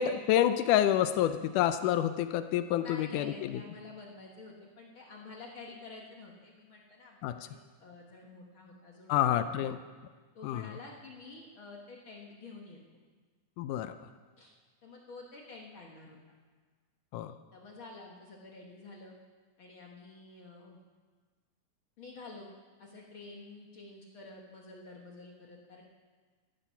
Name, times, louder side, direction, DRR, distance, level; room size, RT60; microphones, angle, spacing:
voice 1, 0.0-3.6 7.2-7.4 9.1-9.8 10.4-10.8 13.6-13.9 17.1-17.3, left 11 dB, 85° left, 10 dB, 2.1 m, -28 dB
voice 2, 2.8-9.6 10.3-12.8 14.4-14.5 14.8-16.2 17.5-19.1 19.6-20.8 22.0-22.5 22.8-25.8, left 3 dB, 50° left, -1 dB, 1.7 m, -49 dB
14.5 x 13.0 x 5.7 m, 1.4 s
omnidirectional pair, 3.6 m